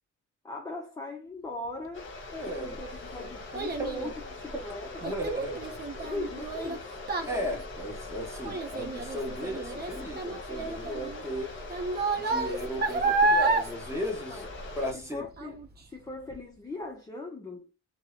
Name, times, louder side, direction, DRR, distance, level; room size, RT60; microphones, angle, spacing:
voice 1, 0.4-2.1 2.5-5.2 6.0-6.9 7.2-7.6 14.3-14.5 14.9-15.6 15.9-17.7, left 2 dB, 15° left, 0.5 m, -39 dB
sound 1, 1.9-14.9, left 2 dB, 40° left, 0.9 m, -42 dB
voice 2, 2.3-2.8 5.0-5.6 7.3-11.7 12.2-14.4 14.8-15.2, equal, 10° right, 1.0 m, -36 dB
Child speech kid speaking, 2.4-15.0 15.4-15.8 16.3-16.4, right 3 dB, 35° right, 0.6 m, -31 dB
2.8 x 2.1 x 2.3 m
cardioid pair, 90°, 30 cm